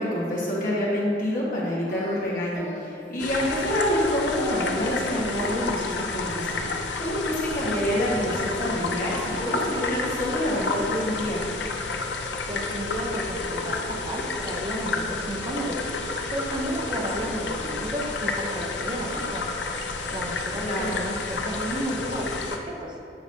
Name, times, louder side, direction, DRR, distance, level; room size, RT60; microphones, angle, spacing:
voice 1, 0.0-6.5 7.0-9.1 9.4-11.4 20.6-21.0, left 1 dB, 50° left, -6 dB, 1.4 m, -27 dB
Singing, 1.9-2.2 2.5-2.9 3.2-3.5 4.2-5.8 6.5-8.2 8.5-9.7, left 1 dB, 15° left, 0.9 m, -40 dB
sound 1, 3.2-22.6, left 3 dB, 80° left, 0.5 m, -30 dB
voice 2, 12.5-15.8 16.3-19.5 20.1-22.9, right 1 dB, 25° right, 0 dB, 0.5 m, -32 dB
8.1 x 5.0 x 2.7 m, 2.5 s
head